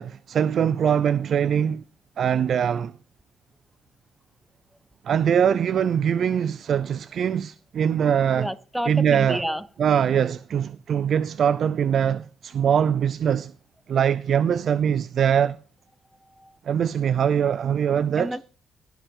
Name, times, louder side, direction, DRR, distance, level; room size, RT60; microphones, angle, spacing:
voice 1, 0.0-1.8 2.2-2.9 5.0-8.5 8.9-9.4 9.8-13.5 13.9-15.6 16.7-18.3, right 8 dB, 60° right, 0.5 m, -22 dB
voice 2, 8.4-9.7 16.2-16.6 18.1-18.4, equal, ahead, 0.8 m, -30 dB
16.0 x 5.7 x 5.5 m
cardioid pair, 85°, 0 cm